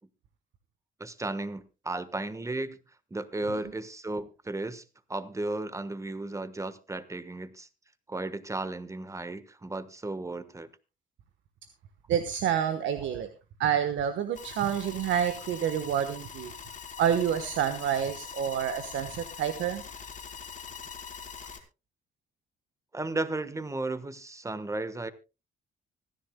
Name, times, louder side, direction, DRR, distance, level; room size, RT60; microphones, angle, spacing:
voice 1, 1.0-2.8 3.1-4.8 5.1-7.7 8.1-10.7 13.0-13.2 22.9-25.1, right 2 dB, 15° right, 1.2 m, -34 dB
voice 2, 12.1-13.3 13.6-16.5 17.0-19.8, right 9 dB, 75° right, 1.2 m, -28 dB
sound 1, 14.3-21.6, left 6 dB, 40° left, 3.0 m, -43 dB
25.0 x 10.5 x 2.2 m
cardioid pair, 90°, 20 cm